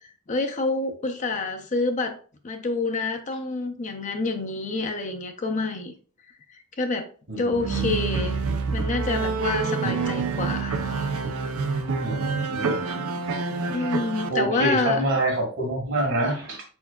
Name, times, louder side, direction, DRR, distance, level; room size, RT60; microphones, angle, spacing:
voice 1, 0.3-2.2 2.4-5.9 6.8-7.1 7.4-8.4 8.7-10.8 13.7-15.0, left 3 dB, 35° left, 5 dB, 0.5 m, -27 dB
voice 2, 7.3-8.0 9.8-10.1 12.0-12.8 13.7-13.9 14.3-16.6, right 1 dB, 60° right, 1 dB, 1.8 m, -27 dB
sound 1, 7.5-14.3, right 4 dB, 75° right, 0.5 m, -27 dB
4.5 x 4.4 x 2.3 m, 0.40 s
head